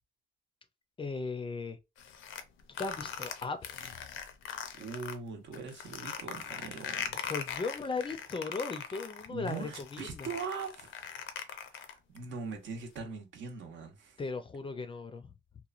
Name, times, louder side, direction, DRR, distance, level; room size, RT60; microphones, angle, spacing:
voice 1, 1.0-1.8 2.8-3.6 7.2-10.3 14.2-15.3, left 4 dB, 25° left, 0.4 m, -37 dB
sound 1, 2.0-5.2 5.5-12.2, left 8 dB, 75° left, 0.5 m, -40 dB
voice 2, 4.8-7.2 9.3-14.2, right 4 dB, 70° right, 0.8 m, -41 dB
3.0 x 2.2 x 2.4 m
cardioid pair, 90°, 20 cm